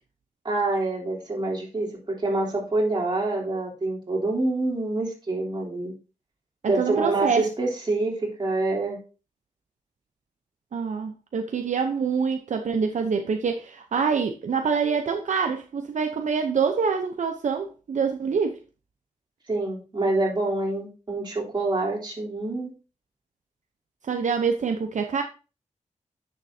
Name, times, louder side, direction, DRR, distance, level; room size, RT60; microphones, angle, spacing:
voice 1, 0.4-5.9 6.6-9.0 19.5-22.7, right 2 dB, 35° right, 3.3 m, -26 dB
voice 2, 6.6-7.5 10.7-18.6 24.0-25.2, right 5 dB, 65° right, 0.8 m, -25 dB
9.7 x 6.7 x 2.7 m
wide cardioid pair, 125°, 13 cm